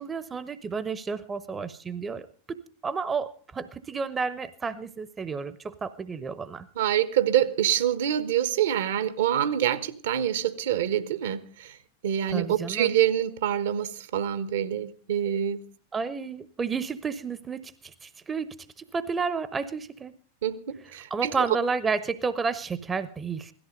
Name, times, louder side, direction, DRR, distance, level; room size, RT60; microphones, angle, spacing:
voice 1, 0.0-6.7 12.3-12.9 15.9-18.5 18.9-20.1 21.1-23.5, right 5 dB, 15° right, 0.9 m, -31 dB
voice 2, 6.8-11.8 12.0-15.6 20.4-20.6 20.9-21.3, right 10 dB, 60° right, 1.3 m, -26 dB
17.5 x 14.0 x 5.2 m
figure-of-eight pair, 90°, 0 cm